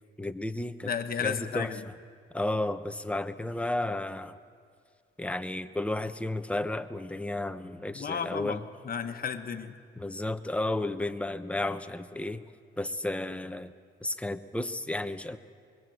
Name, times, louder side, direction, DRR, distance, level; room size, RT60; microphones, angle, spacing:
voice 1, 0.2-0.9 1.2-1.7 2.3-4.4 5.2-8.6 10.0-12.4 12.8-13.7 14.0-15.4, left 1 dB, 5° left, 9 dB, 1.1 m, -32 dB
voice 2, 0.8-1.8 7.9-9.8, left 7 dB, 50° left, 8 dB, 1.4 m, -33 dB
25.0 x 22.0 x 7.9 m, 2.2 s
cardioid pair, 90°, 20 cm